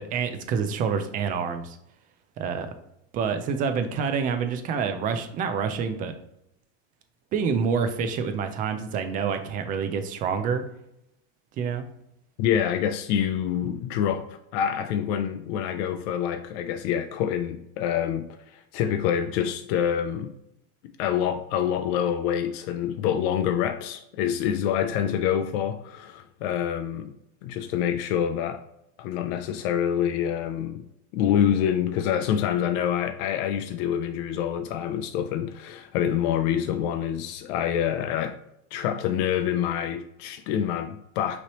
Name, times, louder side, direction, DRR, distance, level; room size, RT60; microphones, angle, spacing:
voice 1, 0.0-1.8 2.4-2.7 3.1-6.2 7.3-10.6 11.6-11.9, right 6 dB, 25° right, 0.3 m, -27 dB
voice 2, 12.4-20.3 20.8-27.2 27.4-28.6 29.0-30.9 31.1-38.4 38.7-41.4, left 9 dB, 65° left, 0.5 m, -26 dB
5.8 x 3.1 x 2.9 m
supercardioid pair, 155°, 35 cm